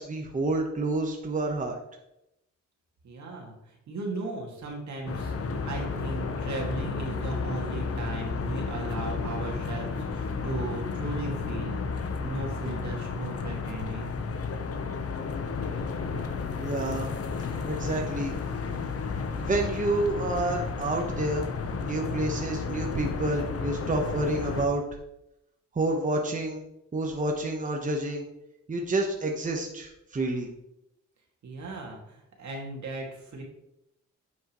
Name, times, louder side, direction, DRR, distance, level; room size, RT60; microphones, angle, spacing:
voice 1, 0.0-1.8 16.6-17.1 17.7-18.4 19.4-21.5 21.8-24.8 25.7-26.6 26.9-28.2 28.7-30.5, right 2 dB, 25° right, 2 dB, 1.1 m, -29 dB
voice 2, 3.0-14.1 31.4-33.4, right 2 dB, 75° right, -1 dB, 2.3 m, -37 dB
sound 1, 5.1-24.7, left 4 dB, 55° left, 0.9 m, -32 dB
9.6 x 6.5 x 3.1 m, 0.84 s
cardioid pair, 110°, 29 cm